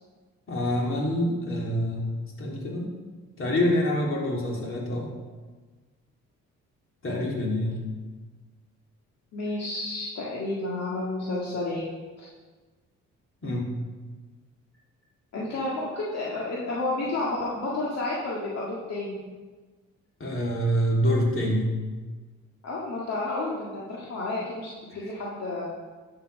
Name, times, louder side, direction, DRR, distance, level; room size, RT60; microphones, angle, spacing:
voice 1, 0.5-2.1 2.4-2.9 3.4-5.1 7.0-7.8 13.4-13.7 20.2-21.7, equal, 45° left, -2 dB, 3.1 m, -26 dB
voice 2, 9.3-11.8 12.2-12.3 15.3-19.2 22.6-25.7, left 2 dB, 60° left, -5 dB, 1.9 m, -31 dB
11.5 x 5.9 x 5.3 m, 1.3 s
cardioid pair, 90°, 30 cm